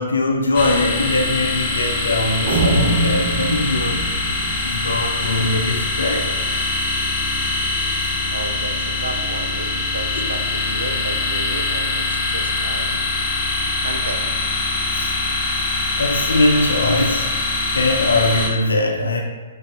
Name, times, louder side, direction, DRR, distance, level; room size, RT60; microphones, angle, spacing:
voice 1, 0.0-4.1 4.6-6.3 14.9-15.1 16.0-17.3 17.7-19.2, left 2 dB, 75° left, 1 dB, 0.4 m, -21 dB
sound 1, 0.5-18.5, left 3 dB, 25° left, 0.8 m, -23 dB
sound 2, 2.5-5.6, right 2 dB, 40° right, 0.8 m, -23 dB
voice 2, 8.3-13.0 13.8-14.3, right 3 dB, 75° right, 6 dB, 0.4 m, -33 dB
6.0 x 2.0 x 2.3 m, 1.5 s
figure-of-eight pair, 120°, 0 cm